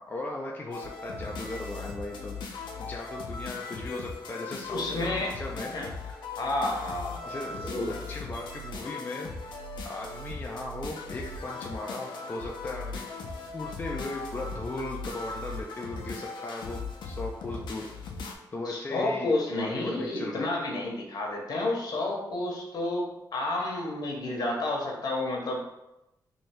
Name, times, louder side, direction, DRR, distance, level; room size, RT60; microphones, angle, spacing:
voice 1, 0.0-5.8 6.1-6.2 7.2-9.3 9.8-13.1 13.5-17.9 18.5-20.5, left 2 dB, 25° left, -1 dB, 0.4 m, -38 dB
sound 1, 0.7-18.3, left 4 dB, 85° left, 0.6 m, -39 dB
voice 2, 4.7-5.4 5.7-5.9 6.4-8.0 18.6-25.6, left 2 dB, 60° left, -1 dB, 0.9 m, -30 dB
3.2 x 2.7 x 4.4 m, 0.91 s
wide cardioid pair, 170°, 8 cm